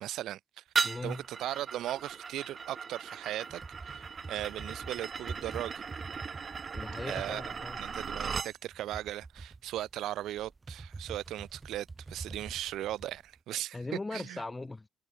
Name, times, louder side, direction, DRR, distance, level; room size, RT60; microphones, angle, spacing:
voice 1, 0.0-0.6 1.0-4.0 4.3-5.8 7.1-7.4 7.8-13.8 14.1-14.4, right 13 dB, 85° right, 1.0 m, -38 dB
sound 1, 0.7-8.5, right 6 dB, 40° right, 2.0 m, -37 dB
voice 2, 0.8-1.2 6.7-7.8 13.7-14.9, left 2 dB, 20° left, 7.6 m, -39 dB
sound 2, 3.5-13.4, right 3 dB, 25° right, 2.0 m, -46 dB
cardioid pair, 90°, 0 cm